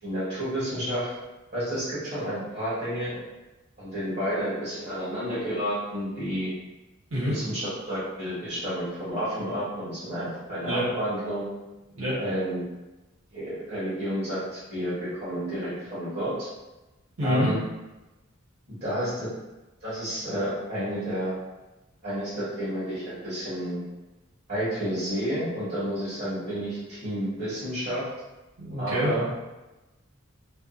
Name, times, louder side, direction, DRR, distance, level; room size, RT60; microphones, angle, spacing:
voice 1, 0.0-1.1 1.5-3.2 3.8-6.5 7.3-11.5 12.2-12.6 13.3-16.3 17.2-17.6 18.8-19.3 19.8-21.3 22.0-23.8 24.5-28.1 28.8-29.2, equal, 50° right, -12 dB, 1.2 m, -30 dB
voice 2, 17.2-17.5 28.6-29.3, equal, 70° right, -9 dB, 1.3 m, -26 dB
2.6 x 2.3 x 2.4 m, 1.1 s
head